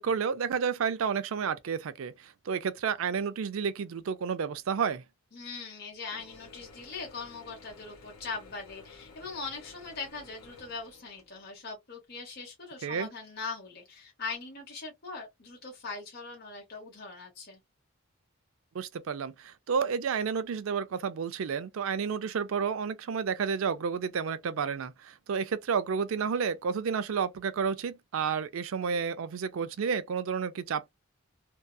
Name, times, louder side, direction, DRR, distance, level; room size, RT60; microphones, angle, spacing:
voice 1, 0.0-5.0 12.8-13.1 18.7-30.9, right 6 dB, 70° right, 0.4 m, -31 dB
voice 2, 5.3-17.6, left 4 dB, 45° left, 0.8 m, -41 dB
Mechanisms / Drill, 6.1-11.6, left 4 dB, 80° left, 0.9 m, -53 dB
2.6 x 2.3 x 2.2 m
head